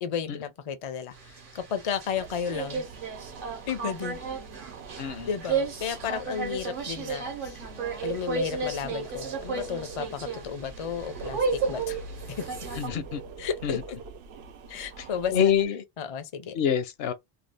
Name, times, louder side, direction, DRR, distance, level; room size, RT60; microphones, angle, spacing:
voice 1, 0.0-2.8 3.7-4.2 5.2-7.6 8.0-12.0 12.3-12.5 13.4-14.0 14.7-15.4 16.0-16.6, left 7 dB, 50° left, 0.4 m, -33 dB
sound 1, 1.1-12.9, right 4 dB, 60° right, 0.9 m, -33 dB
sound 2, 2.1-15.6, right 4 dB, 85° right, 0.8 m, -44 dB
voice 2, 5.0-5.3 12.7-13.2 13.6-13.8 15.0-15.8 16.5-17.1, left 8 dB, 75° left, 0.8 m, -26 dB
2.7 x 2.3 x 3.3 m
omnidirectional pair, 1.0 m